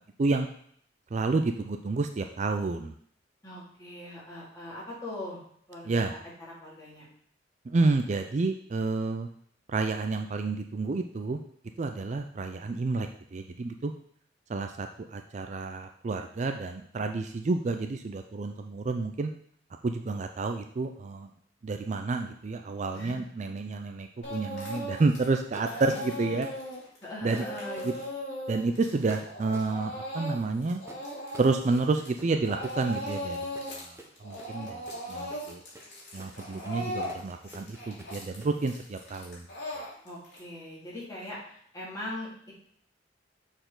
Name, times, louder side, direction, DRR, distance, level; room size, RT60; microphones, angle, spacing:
voice 1, 1.1-2.9 5.9-6.1 7.7-9.3 9.7-11.4 11.8-13.9 14.5-19.3 19.8-21.3 21.6-26.5 27.2-27.5 27.8-27.9 28.5-30.8 31.4-34.0 34.2-34.8 35.1-35.6 36.1-39.5 39.7-39.8, right 3 dB, 40° right, 5 dB, 0.4 m, -30 dB
voice 2, 3.4-5.4 5.7-7.1 22.9-23.2 25.7-26.0 27.0-27.9 36.5-36.8 40.0-42.5, left 1 dB, 20° left, -7 dB, 2.4 m, -41 dB
Speech / Crying sobbing, 24.2-25.2 25.5-32.2 32.4-33.9 34.2-40.4, equal, 70° left, 2.4 m, -38 dB
sound 1, 25.5-26.3 27.3-27.9 29.1-29.8 30.8-38.6, right 1 dB, 15° right, 0.8 m, -49 dB
6.9 x 4.4 x 3.8 m, 0.62 s
head